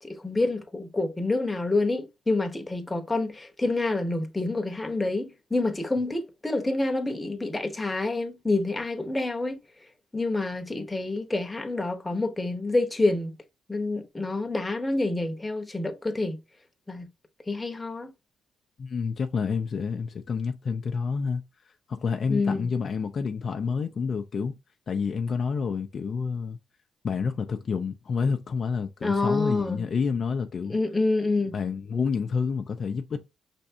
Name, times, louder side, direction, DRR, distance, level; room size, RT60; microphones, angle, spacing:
voice 1, 0.0-9.6 10.1-13.4 13.7-16.4 16.9-17.1 17.5-18.1 22.3-22.7 29.0-29.8 30.7-31.6, left 2 dB, 15° left, 0.9 m, -27 dB
voice 2, 18.8-21.4 21.9-24.5 24.9-26.6 27.0-30.8 31.5-33.3, left 5 dB, 50° left, 0.5 m, -29 dB
5.3 x 3.4 x 2.7 m
cardioid pair, 90°, 0 cm